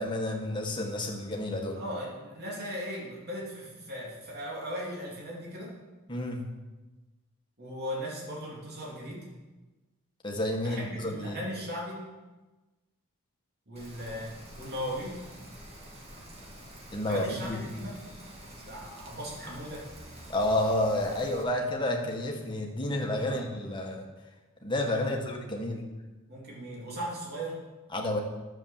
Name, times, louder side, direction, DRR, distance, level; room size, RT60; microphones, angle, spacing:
voice 1, 0.0-1.8 6.1-6.5 10.2-11.4 16.9-17.6 20.3-24.0 24.6-25.8 27.9-28.2, left 1 dB, 20° left, 1 dB, 1.6 m, -30 dB
voice 2, 1.7-5.7 7.6-9.3 10.6-12.0 13.7-15.2 17.0-18.0 18.6-19.9 23.1-23.4 25.0-25.4 25.7-25.8 26.3-27.6, equal, 45° right, -4 dB, 3.4 m, -38 dB
Rain, 13.8-21.4, equal, 30° right, 2.2 m, -47 dB
11.0 x 7.3 x 7.4 m, 1.2 s
head